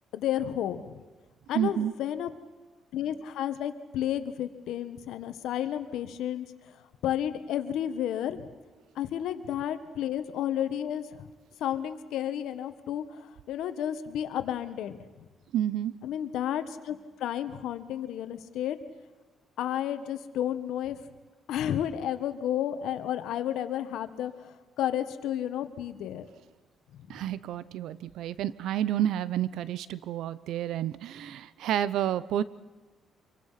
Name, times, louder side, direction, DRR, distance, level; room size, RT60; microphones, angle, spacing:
voice 1, 0.1-1.0 1.5-2.3 2.9-6.8 7.0-8.5 8.9-11.3 11.6-15.0 16.0-18.8 19.6-21.0 21.5-26.3, left 10 dB, 85° left, 10 dB, 1.6 m, -32 dB
voice 2, 1.5-1.9 15.5-15.9 27.1-32.4, right 11 dB, 85° right, 17 dB, 0.9 m, -30 dB
26.0 x 24.0 x 5.9 m, 1.3 s
cardioid pair, 130°, 0 cm